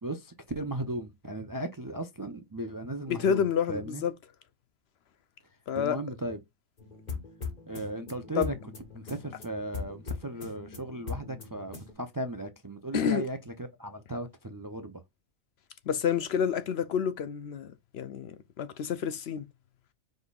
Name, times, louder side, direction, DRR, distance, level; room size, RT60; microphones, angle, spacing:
voice 1, 0.0-4.0 5.7-6.4 7.7-8.5 8.9-15.0, right 1 dB, 25° right, 0.4 m, -36 dB
voice 2, 3.1-4.1 5.7-6.0 8.3-8.5 12.9-13.2 15.9-19.5, left 7 dB, 65° left, 0.7 m, -29 dB
sound 1, 6.8-11.9, left 5 dB, 35° left, 1.6 m, -40 dB
5.2 x 4.2 x 2.3 m
omnidirectional pair, 1.3 m